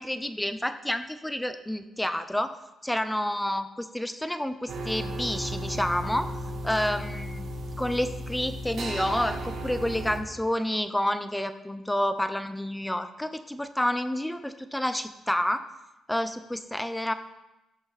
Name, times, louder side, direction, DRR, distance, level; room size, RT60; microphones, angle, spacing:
voice 1, 0.0-2.5 2.8-6.3 6.6-7.5 7.8-15.6 16.1-17.1, left 1 dB, 5° left, 10 dB, 0.8 m, -29 dB
sound 1, 4.7-10.2, right 1 dB, 65° right, 2.7 m, -35 dB
16.5 x 6.9 x 4.2 m, 0.97 s
cardioid pair, 90°, 0 cm